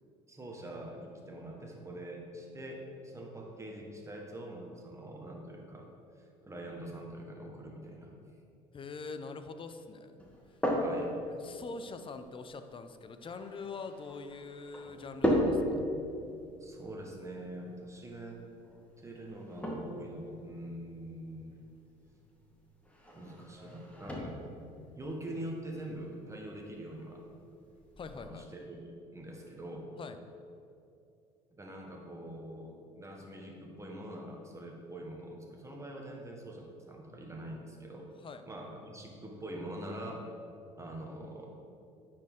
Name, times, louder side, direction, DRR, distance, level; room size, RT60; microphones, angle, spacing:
voice 1, 0.3-5.9 6.2-8.1 10.8-11.2 16.6-18.4 19.0-21.6 23.1-24.4 24.9-27.2 28.1-29.9 31.5-38.1 38.5-40.3 40.8-41.5, right 1 dB, 20° right, 1 dB, 1.4 m, -44 dB
voice 2, 8.7-10.1 10.5-10.6 11.4-15.8 28.0-28.4 30.0-30.2 38.2-38.4, left 4 dB, 35° left, 9 dB, 0.5 m, -43 dB
sound 1, 10.2-28.3, equal, 10° left, 1.4 m, -38 dB
9.7 x 4.4 x 3.7 m, 2.6 s
supercardioid pair, 75°, 16 cm